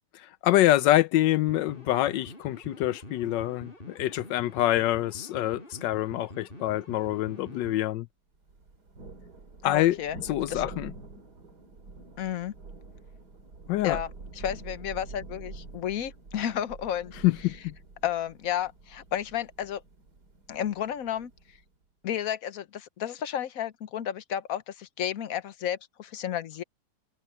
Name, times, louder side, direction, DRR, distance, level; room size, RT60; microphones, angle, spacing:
voice 1, 0.4-8.1 9.6-10.0 10.2-10.9 13.7-14.0 17.2-17.7, left 14 dB, 85° left, 1.2 m, -25 dB
sound 1, 1.5-7.8, left 1 dB, 30° left, 4.5 m, -45 dB
Thunder, 8.5-21.7, right 3 dB, 65° right, 3.5 m, -46 dB
voice 2, 9.6-10.7 12.2-12.5 13.8-17.2 18.0-19.8 20.5-21.3 22.0-26.6, left 10 dB, 55° left, 1.2 m, -32 dB
omnidirectional pair, 1.9 m